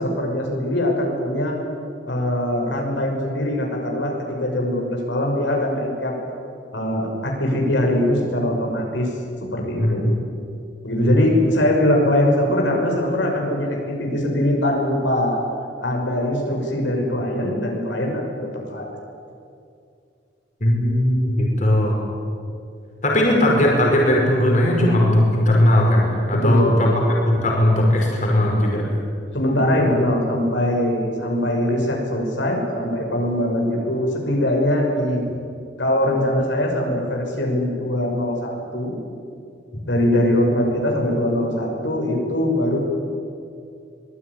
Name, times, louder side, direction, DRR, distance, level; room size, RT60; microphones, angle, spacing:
voice 1, 0.0-1.6 2.1-4.1 4.4-6.2 6.7-9.1 9.5-10.1 10.8-15.4 15.8-18.2 18.7-18.9 26.3-26.9 29.3-35.2 35.8-39.0 39.9-42.8, left 1 dB, 80° left, 0 dB, 6.0 m, -22 dB
voice 2, 20.6-22.0 23.0-28.8, left 1 dB, 40° left, -1 dB, 5.5 m, -18 dB
24.5 x 20.0 x 9.8 m, 2.4 s
head